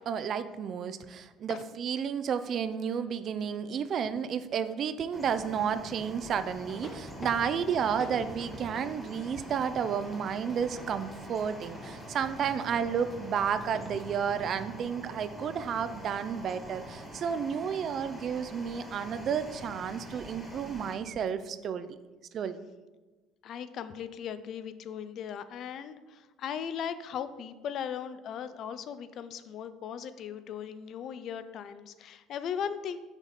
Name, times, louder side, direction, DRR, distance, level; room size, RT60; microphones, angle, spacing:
voice 1, 0.1-22.0 22.3-22.6, right 7 dB, 50° right, 12 dB, 0.4 m, -32 dB
sound 1, 2.4-4.4 6.7-14.0, left 2 dB, 30° left, 1.0 m, -48 dB
sound 2, 5.1-20.9, right 1 dB, 5° right, 1.4 m, -45 dB
voice 2, 23.4-33.0, left 8 dB, 60° left, 12 dB, 0.4 m, -38 dB
5.9 x 4.1 x 4.0 m, 1.2 s
supercardioid pair, 90°, 0 cm